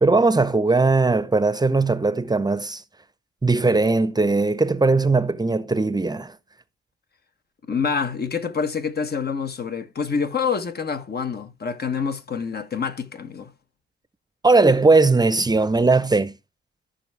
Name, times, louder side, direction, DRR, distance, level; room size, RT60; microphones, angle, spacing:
voice 1, 0.0-2.8 3.4-6.3 14.4-16.3, right 3 dB, 20° right, 0.7 m, -19 dB
voice 2, 7.7-13.5, left 6 dB, 50° left, 1.0 m, -27 dB
14.0 x 5.5 x 3.3 m
cardioid pair, 75°, 21 cm